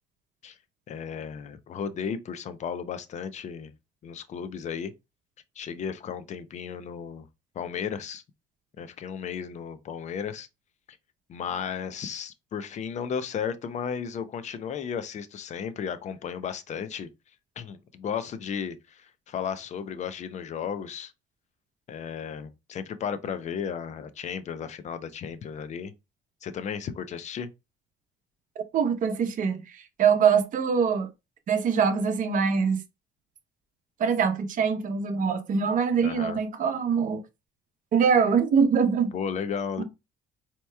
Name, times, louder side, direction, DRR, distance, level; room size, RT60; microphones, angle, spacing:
voice 1, 0.9-3.7 4.0-4.9 5.6-7.3 7.5-8.2 8.8-10.5 11.3-17.1 17.6-21.1 21.9-25.9 26.4-27.5 36.0-36.4 39.1-39.8, left 7 dB, 45° left, 0.5 m, -34 dB
voice 2, 28.7-31.1 31.5-32.8 34.0-37.2 37.9-39.1 39.8-39.9, right 6 dB, 50° right, 0.8 m, -23 dB
4.4 x 2.9 x 2.2 m
cardioid pair, 110°, 17 cm